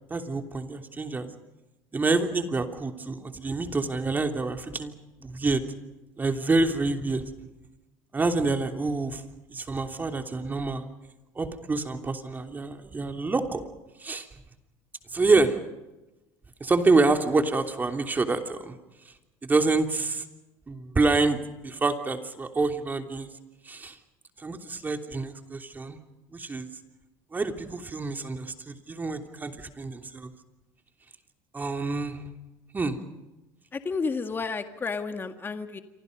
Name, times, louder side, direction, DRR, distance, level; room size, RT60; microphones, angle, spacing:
voice 1, 0.1-1.3 1.9-4.9 5.2-5.6 6.2-7.3 8.1-9.2 9.5-10.9 11.3-13.6 14.0-14.3 15.1-15.6 16.6-18.8 19.4-20.2 20.7-23.3 23.7-24.0 24.4-26.0 26.3-26.7 27.3-30.3 31.5-32.2 32.7-33.0, right 3 dB, 20° right, 5 dB, 3.1 m, -27 dB
voice 2, 33.7-35.8, left 4 dB, 25° left, 7 dB, 1.9 m, -31 dB
27.5 x 25.5 x 5.4 m, 1.0 s
supercardioid pair, 90°, 8 cm